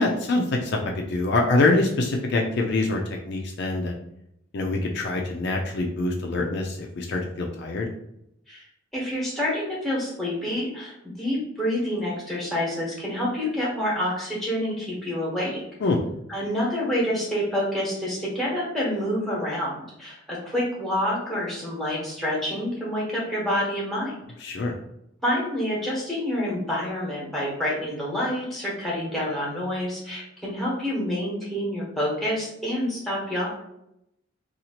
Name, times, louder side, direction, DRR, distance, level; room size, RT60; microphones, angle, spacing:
voice 1, 0.0-3.0 3.3-3.9 4.5-7.9 15.8-16.0 24.4-24.7, left 2 dB, 55° left, 1 dB, 0.4 m, -24 dB
voice 2, 8.9-15.6 16.3-24.2 24.5-24.6 25.2-33.5, equal, ahead, -6 dB, 1.0 m, -28 dB
2.8 x 2.4 x 2.8 m, 0.80 s
head